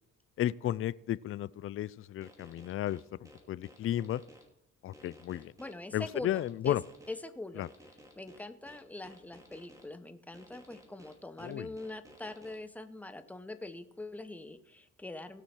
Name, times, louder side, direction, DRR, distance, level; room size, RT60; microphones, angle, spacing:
voice 1, 0.4-4.2 4.8-5.5 5.9-6.8 7.6-7.7 11.4-11.7, left 12 dB, 45° left, 20 dB, 0.4 m, -34 dB
sound 1, 2.2-4.4 4.9-7.1 7.6-9.8 10.3-12.6, equal, 10° right, 2.5 m, -55 dB
voice 2, 5.6-6.8 7.1-7.7 8.2-15.4, left 2 dB, 5° left, 10 dB, 0.8 m, -43 dB
17.5 x 6.2 x 4.3 m, 0.81 s
cardioid pair, 90°, 30 cm